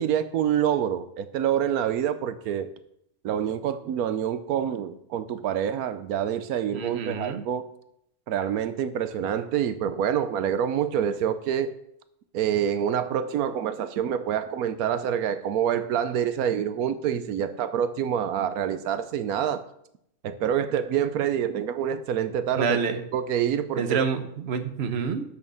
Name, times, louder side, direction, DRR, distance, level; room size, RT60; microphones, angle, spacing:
voice 1, 0.0-2.7 3.2-7.7 8.3-11.7 12.3-19.6 20.2-22.8 23.1-24.1, right 9 dB, 85° right, 11 dB, 1.2 m, -26 dB
voice 2, 6.7-7.4 22.6-23.0 23.8-25.2, right 5 dB, 50° right, 8 dB, 1.2 m, -27 dB
9.8 x 6.5 x 6.9 m, 0.75 s
omnidirectional pair, 1.5 m